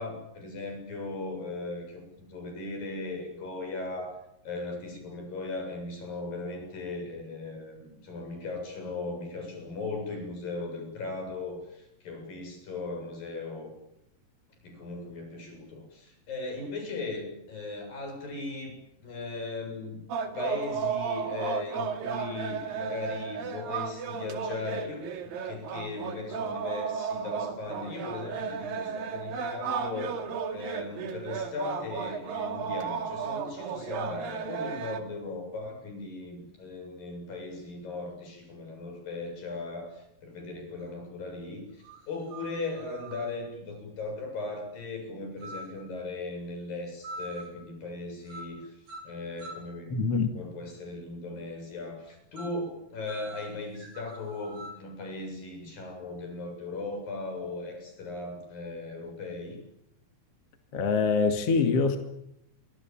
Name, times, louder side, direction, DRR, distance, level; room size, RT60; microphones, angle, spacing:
voice 1, 0.0-4.2 4.4-13.7 14.6-20.0 20.3-30.2 30.5-59.6, left 3 dB, 80° left, 4 dB, 9.3 m, -38 dB
sound 1, 20.1-35.0, right 6 dB, 90° right, 4.1 m, -34 dB
sound 2, 40.8-40.9 41.8-43.4 45.4-45.8 47.0-47.6 48.3-48.6 48.9-49.8 52.4-52.6 53.1-54.9, right 2 dB, 55° right, 6.2 m, -44 dB
voice 2, 49.9-50.4 60.7-62.0, left 4 dB, 45° left, 6 dB, 3.0 m, -24 dB
29.5 x 24.5 x 7.4 m, 0.79 s
omnidirectional pair, 4.0 m